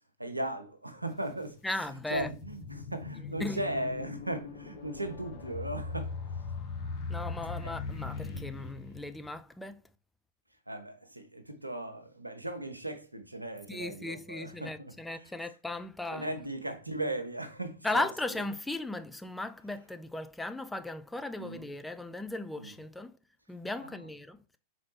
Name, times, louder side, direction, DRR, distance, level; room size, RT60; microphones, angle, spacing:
voice 1, 0.2-1.6 2.1-6.4 7.6-7.7 10.7-15.5 16.1-18.1 21.4-21.7 22.6-22.7 23.8-24.1, right 1 dB, 85° right, 0.6 m, -37 dB
sound 1, 1.1-1.2 1.8-9.4, left 4 dB, 45° left, 1.3 m, -40 dB
voice 2, 1.6-2.3 3.4-3.6 7.1-9.8 13.7-16.4 17.8-23.2 23.5-24.6, left 2 dB, 5° left, 0.3 m, -37 dB
4.1 x 3.9 x 3.2 m
figure-of-eight pair, 90°, 0 cm